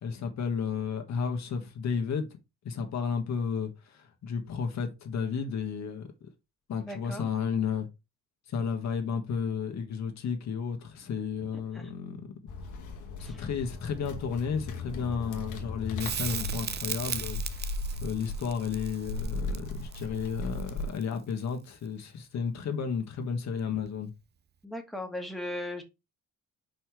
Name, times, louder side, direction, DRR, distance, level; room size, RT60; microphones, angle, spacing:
voice 1, 0.0-2.3 2.6-6.1 6.7-7.9 8.5-12.2 13.2-17.4 18.0-24.1, left 6 dB, 65° left, 1.6 m, -32 dB
voice 2, 6.8-7.3 11.7-11.9 13.2-13.5 24.6-25.8, left 1 dB, ahead, 1.8 m, -38 dB
sound 1, 12.5-20.9, left 2 dB, 85° left, 1.4 m, -37 dB
Crackle, 16.0-21.1 23.9-24.0, right 8 dB, 35° right, 0.5 m, -37 dB
5.2 x 4.4 x 4.7 m
cardioid pair, 90°, 30 cm